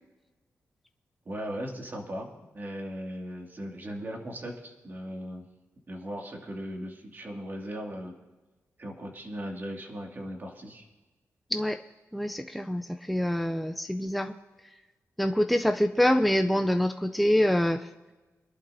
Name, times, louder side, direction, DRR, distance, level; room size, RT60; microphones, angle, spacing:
voice 1, 1.3-2.3 2.5-5.4 5.9-8.1 8.8-10.8, equal, 40° right, 1 dB, 2.2 m, -38 dB
voice 2, 12.1-14.3 15.2-17.9, equal, ahead, 6 dB, 0.4 m, -25 dB
25.0 x 11.5 x 2.7 m, 1.2 s
wide cardioid pair, 145°, 5 cm